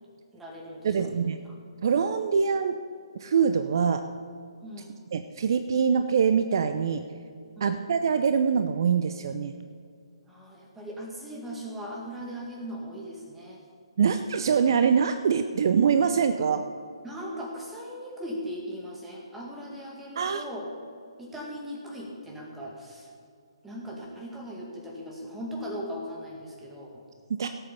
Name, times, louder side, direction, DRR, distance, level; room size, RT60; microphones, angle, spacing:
voice 1, 0.3-1.6 4.6-5.0 7.6-7.9 10.3-13.6 17.0-20.6 21.2-23.1 23.6-27.0, equal, 5° right, -2 dB, 2.1 m, -39 dB
voice 2, 0.8-1.4 1.8-2.8 3.2-4.0 5.1-7.0 7.6-9.5 14.0-16.6 20.2-20.4 27.4-27.5, right 6 dB, 50° right, 8 dB, 0.6 m, -24 dB
17.5 x 7.8 x 5.3 m, 2.3 s
figure-of-eight pair, 135°, 3 cm